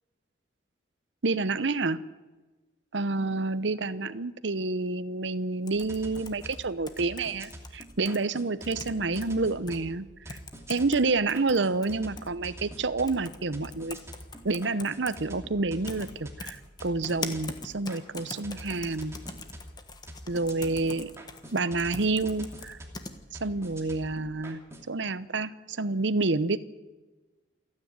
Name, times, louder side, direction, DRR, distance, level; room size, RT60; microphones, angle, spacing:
voice 1, 1.2-2.0 2.9-10.4 10.7-14.0 14.4-19.1 20.3-21.1 21.5-22.8 23.4-24.6 24.9-26.6, right 3 dB, 70° right, 15 dB, 0.9 m, -29 dB
sound 1, 5.7-8.2 8.6-9.3 9.7-9.8 10.3-11.0 11.3-12.3 13.1-13.4 13.6-15.2 15.9-16.1 16.4-23.1, left 3 dB, 20° left, 1.5 m, -41 dB
sound 2, 5.7-24.9, equal, 15° right, 2.7 m, -46 dB
28.0 x 9.9 x 9.4 m, 1.2 s
head